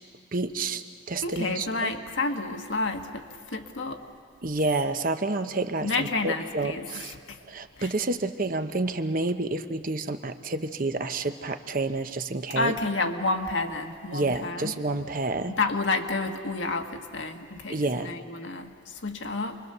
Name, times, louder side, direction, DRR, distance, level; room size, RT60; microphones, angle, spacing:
voice 1, 0.3-1.9 4.4-7.1 7.5-12.8 14.1-15.6 17.7-18.1, right 2 dB, 45° right, 8 dB, 0.9 m, -29 dB
voice 2, 1.2-4.0 5.8-7.4 7.8-7.9 12.5-14.7 15.5-19.6, left 3 dB, 80° left, 4 dB, 1.5 m, -30 dB
28.0 x 22.5 x 6.8 m, 2.2 s
head